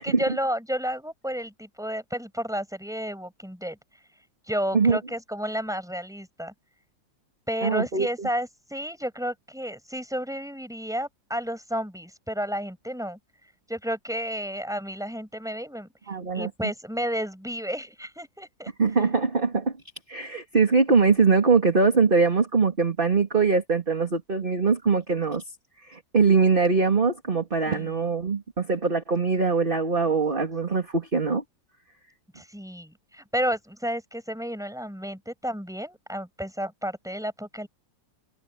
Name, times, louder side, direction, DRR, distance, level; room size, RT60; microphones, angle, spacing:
voice 1, 0.0-3.8 4.5-6.5 7.5-13.2 13.7-15.9 16.3-18.7 27.7-28.0 32.3-37.7, equal, ahead, 6.5 m, -31 dB
voice 2, 7.6-8.3 16.1-16.5 18.8-19.7 20.1-25.4 25.8-31.4, right 4 dB, 30° right, 2.7 m, -22 dB
omnidirectional pair, 2.0 m